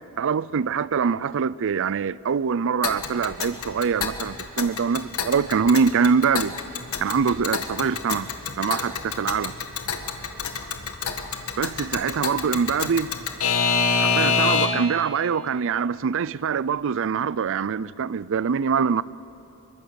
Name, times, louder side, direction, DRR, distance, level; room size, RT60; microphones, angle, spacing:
voice 1, 0.2-6.5 7.0-8.3 8.6-9.5 11.6-13.1 14.0-19.0, right 6 dB, 60° right, 0.5 m, -24 dB
Alarm / Clock, 2.8-15.0, left 5 dB, 75° left, 1.7 m, -27 dB
25.0 x 23.0 x 7.0 m
head